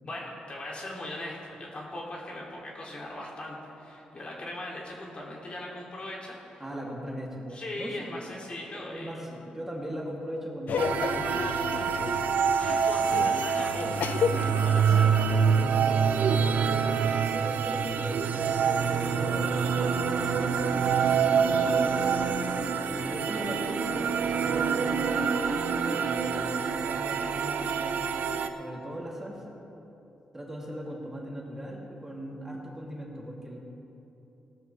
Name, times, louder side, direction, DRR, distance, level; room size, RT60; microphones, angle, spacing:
voice 1, 0.0-6.6 7.5-9.2 12.5-15.2, left 1 dB, 40° left, -3 dB, 3.2 m, -39 dB
voice 2, 6.6-8.3 8.7-12.4 14.2-14.6 15.0-22.3 23.0-28.1 28.5-29.6 30.3-33.6, equal, 15° right, -4 dB, 3.2 m, -39 dB
Laughter, 10.7-15.8, left 7 dB, 70° left, 0.4 m, -33 dB
sound 1, 10.8-28.5, right 7 dB, 75° right, 0.7 m, -26 dB
sound 2, 17.7-26.1, equal, 10° left, 1.2 m, -39 dB
18.0 x 12.5 x 3.5 m, 2.9 s
cardioid pair, 65°, 3 cm